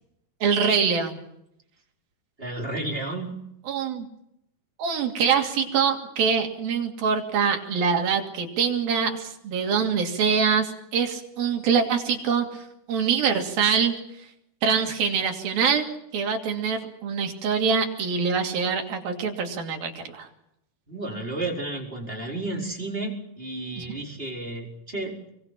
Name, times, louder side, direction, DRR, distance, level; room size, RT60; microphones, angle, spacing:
voice 1, 0.4-1.2 3.7-4.1 4.8-13.9 14.6-15.9 16.1-20.3 23.8-23.9, right 6 dB, 80° right, 3 dB, 4.4 m, -24 dB
voice 2, 2.4-3.3 20.9-25.3, right 2 dB, 15° right, -1 dB, 4.7 m, -32 dB
28.0 x 24.0 x 6.0 m, 0.79 s
omnidirectional pair, 4.2 m